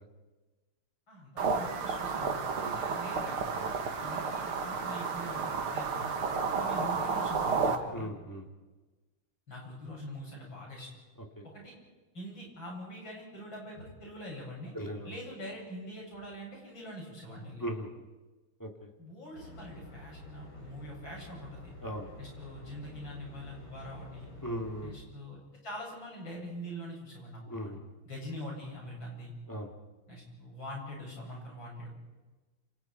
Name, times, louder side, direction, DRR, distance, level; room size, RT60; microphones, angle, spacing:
voice 1, 1.1-3.4 4.0-6.1 6.6-8.1 9.5-10.9 11.5-11.7 12.1-14.7 15.0-17.6 19.0-21.6 22.2-24.3 24.8-25.4 25.6-27.7 28.0-29.3 30.1-31.9, equal, 65° left, -2 dB, 8.9 m, -44 dB
sound 1, 1.4-7.8, right 5 dB, 75° right, 2.6 m, -32 dB
voice 2, 7.9-8.5 11.4-11.5 14.7-15.1 17.6-17.9 18.6-18.7 21.8-22.1 24.4-24.9 27.5-27.8 29.5-29.7, equal, 10° left, 1 dB, 2.8 m, -37 dB
sound 2, 19.3-24.9, left 2 dB, 85° left, 7.6 m, -49 dB
28.5 x 28.0 x 4.8 m, 1.2 s
omnidirectional pair, 2.3 m